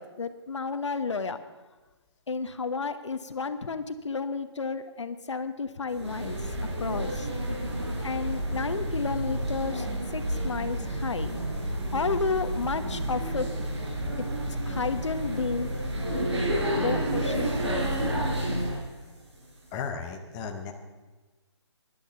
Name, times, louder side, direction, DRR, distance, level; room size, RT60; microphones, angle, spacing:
voice 1, 0.0-1.4 2.3-6.4 6.8-7.3 8.0-9.8 10.1-11.4 11.9-13.5 14.2-14.3 14.7-15.7 16.8-17.9, left 4 dB, 80° left, 10 dB, 1.2 m, -32 dB
sound 1, 5.9-18.9, right 1 dB, 70° right, 5.0 m, -30 dB
voice 2, 19.7-20.7, left 5 dB, 10° left, 3 dB, 0.7 m, -35 dB
14.0 x 11.0 x 7.0 m, 1.2 s
hypercardioid pair, 165°, 15 cm